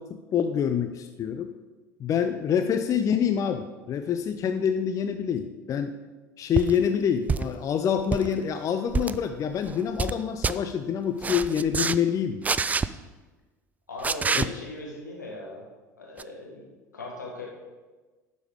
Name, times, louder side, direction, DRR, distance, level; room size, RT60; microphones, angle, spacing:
voice 1, 0.0-1.5 2.0-6.0 6.4-12.5 14.3-14.5, left 8 dB, 35° left, 8 dB, 0.5 m, -26 dB
sound 1, 6.6-6.8 7.3-7.6 8.0-8.3 8.9-9.2 9.7-10.2 10.4-10.6 11.2-12.0 12.4-12.9 14.0-14.5 16.2-16.3, right 5 dB, 15° right, 0.3 m, -26 dB
voice 2, 13.9-15.7 16.0-17.5, left 2 dB, 80° left, -2 dB, 2.1 m, -39 dB
11.0 x 5.3 x 5.0 m, 1.3 s
figure-of-eight pair, 65°, 10 cm